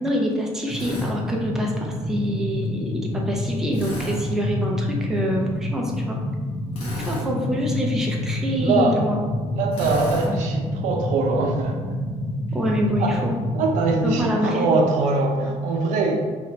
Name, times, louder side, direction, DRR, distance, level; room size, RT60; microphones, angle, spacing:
voice 1, 0.0-6.2 7.0-9.2 10.2-10.4 12.5-13.4 14.0-14.7, equal, 5° right, -1 dB, 0.4 m, -26 dB
Drill, 0.7-1.1 3.7-4.2 6.7-7.3 9.7-10.3, equal, 55° left, 1.2 m, -32 dB
sound 1, 0.7-14.2, left 1 dB, 30° left, 0.8 m, -28 dB
voice 2, 8.6-9.0 9.5-11.8 13.0-13.2 13.5-16.2, right 3 dB, 85° right, 2 dB, 0.6 m, -22 dB
3.0 x 2.5 x 4.3 m, 1.5 s
cardioid pair, 170°, 12 cm